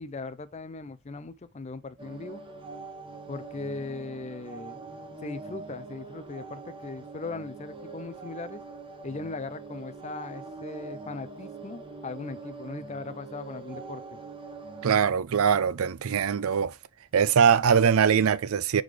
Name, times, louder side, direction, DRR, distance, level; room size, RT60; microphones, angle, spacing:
voice 1, 0.0-2.4 3.3-4.8 5.2-8.6 9.0-14.2, left 3 dB, 30° left, 0.5 m, -39 dB
sound 1, 2.0-15.0, right 3 dB, 25° right, 0.8 m, -43 dB
voice 2, 14.8-16.7 17.1-18.8, right 7 dB, 80° right, 0.4 m, -22 dB
4.9 x 3.9 x 5.0 m
head